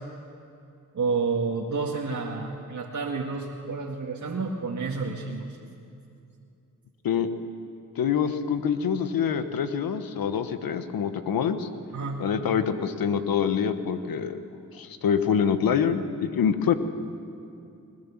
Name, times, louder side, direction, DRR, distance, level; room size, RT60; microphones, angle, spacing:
voice 1, 0.9-5.6 11.9-12.2, right 4 dB, 55° right, -3 dB, 2.1 m, -30 dB
voice 2, 8.0-11.7 12.2-14.4 14.7-16.8, left 7 dB, 85° left, 10 dB, 1.2 m, -25 dB
20.5 x 20.5 x 7.3 m, 2.6 s
cardioid pair, 65°, 34 cm